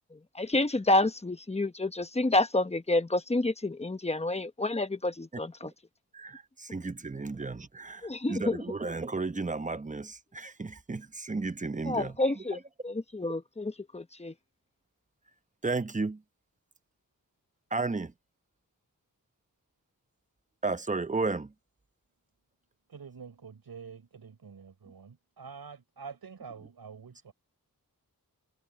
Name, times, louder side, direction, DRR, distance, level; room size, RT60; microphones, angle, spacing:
voice 1, 0.1-5.7 8.0-8.6 11.9-12.6 12.8-14.3, left 2 dB, 15° left, 1.0 m, -29 dB
voice 2, 6.1-12.6 15.6-16.2 17.7-18.1 20.6-21.5, right 3 dB, 20° right, 0.8 m, -33 dB
voice 3, 22.9-27.3, right 6 dB, 90° right, 5.7 m, -47 dB
wide cardioid pair, 95°, 36 cm